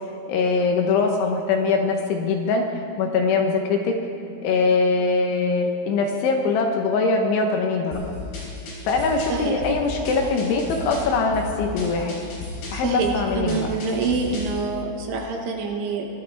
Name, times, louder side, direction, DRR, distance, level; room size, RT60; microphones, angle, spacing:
voice 1, 0.3-2.6 3.0-4.0 4.4-8.0 8.8-12.2 12.7-13.7, left 4 dB, 75° left, 3 dB, 3.3 m, -22 dB
sound 1, 7.9-14.6, left 3 dB, 55° left, 5.6 m, -34 dB
voice 2, 12.7-16.1, right 4 dB, 75° right, 1 dB, 3.7 m, -26 dB
23.5 x 15.0 x 3.5 m, 2.6 s
omnidirectional pair, 5.7 m